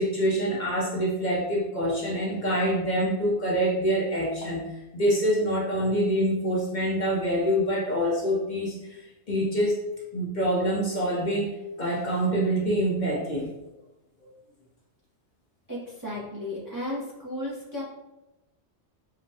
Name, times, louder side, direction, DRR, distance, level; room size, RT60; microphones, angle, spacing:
voice 1, 0.0-9.0 9.3-9.8 10.1-11.5 11.8-13.5 14.2-14.3, equal, 45° left, -4 dB, 0.8 m, -26 dB
voice 2, 15.7-17.8, left 1 dB, 20° right, -7 dB, 0.6 m, -34 dB
5.0 x 2.2 x 2.7 m, 0.97 s
omnidirectional pair, 1.2 m